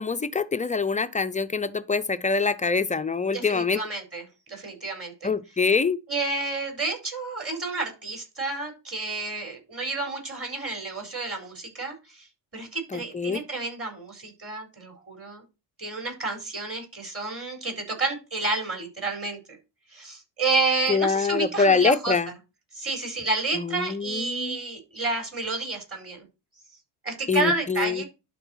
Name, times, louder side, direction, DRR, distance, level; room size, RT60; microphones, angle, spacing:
voice 1, 0.0-3.8 5.2-6.0 12.9-13.4 20.9-22.3 23.6-24.6 27.3-28.0, left 4 dB, 15° left, 0.5 m, -24 dB
voice 2, 3.3-5.3 6.1-12.3 12.5-15.4 15.8-19.4 19.9-22.1 22.7-26.3 27.0-28.0, right 3 dB, 30° right, 4.7 m, -30 dB
12.0 x 4.1 x 4.5 m
cardioid pair, 90°, 49 cm